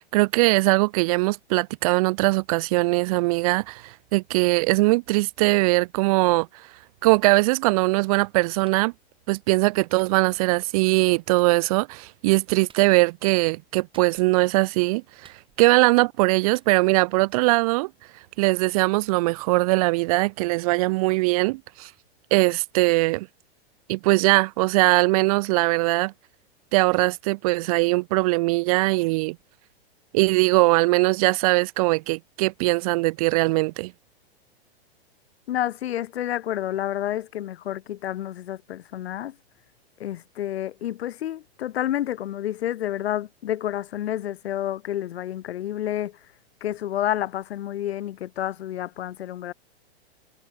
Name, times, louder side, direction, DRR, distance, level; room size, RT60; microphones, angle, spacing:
voice 1, 0.1-6.5 7.0-8.9 9.3-17.9 18.4-21.9 22.3-23.3 23.9-26.1 26.7-29.4 30.1-33.9, right 23 dB, 35° right, 0.4 m, -21 dB
Clapping, 8.6-8.8 10.0-10.2 11.4-11.5 12.7-12.9 13.9-14.4 15.2-15.8 16.5-16.7, right 6 dB, 15° right, 5.6 m, -54 dB
voice 2, 35.5-39.3 40.0-46.1 46.6-49.5, left 12 dB, 75° left, 2.5 m, -29 dB
hypercardioid pair, 135°, 32 cm